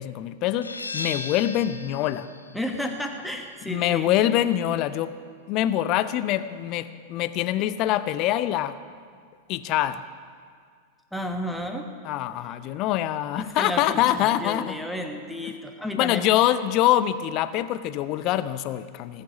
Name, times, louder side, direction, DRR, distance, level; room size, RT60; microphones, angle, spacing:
voice 1, 0.0-2.3 3.7-5.1 5.5-8.8 9.5-10.0 12.0-14.8 15.9-19.2, left 13 dB, 40° left, 14 dB, 0.5 m, -24 dB
sound 1, 0.6-6.0, left 3 dB, 80° left, 0.7 m, -39 dB
voice 2, 2.5-4.4 9.6-9.7 11.1-11.9 12.3-12.5 13.4-16.3, left 1 dB, ahead, 3 dB, 1.2 m, -32 dB
18.5 x 6.7 x 6.0 m, 2.1 s
figure-of-eight pair, 90°, 0 cm